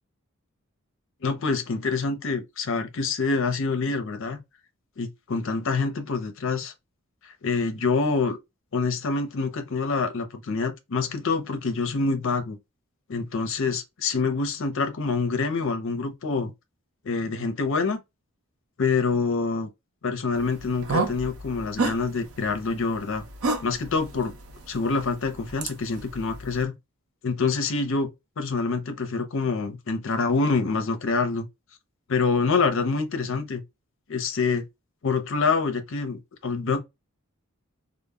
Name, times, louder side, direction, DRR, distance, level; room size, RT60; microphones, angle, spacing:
voice 1, 1.2-4.4 5.0-6.7 7.2-8.4 8.7-12.6 13.1-16.5 17.1-18.0 18.8-19.7 20.0-23.2 23.6-24.4 24.7-26.7 27.2-28.1 28.4-31.5 32.1-33.6 34.1-34.6 35.0-36.8, left 4 dB, 60° left, 0.6 m, -26 dB
sound 1, 20.3-26.6, right 3 dB, 90° right, 0.6 m, -32 dB
2.1 x 2.0 x 3.3 m
head